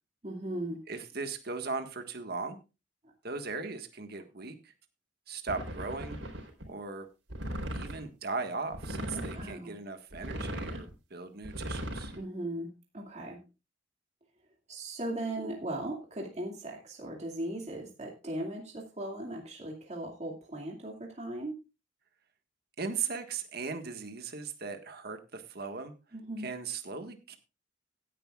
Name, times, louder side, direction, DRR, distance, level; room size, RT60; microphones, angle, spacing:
voice 1, 0.2-0.8 9.1-9.7 12.1-13.4 14.7-21.5 26.1-26.5, right 1 dB, 40° right, 0 dB, 2.4 m, -38 dB
voice 2, 0.9-2.6 3.2-4.7 5.3-6.2 6.7-7.1 7.7-12.1 22.8-25.9 26.4-27.4, right 4 dB, 60° right, 7 dB, 1.6 m, -38 dB
sound 1, 5.5-6.6 7.3-8.0 8.7-9.5 10.1-10.9 11.4-12.2, equal, 85° right, 4.0 m, -37 dB
16.5 x 10.0 x 2.4 m, 0.29 s
head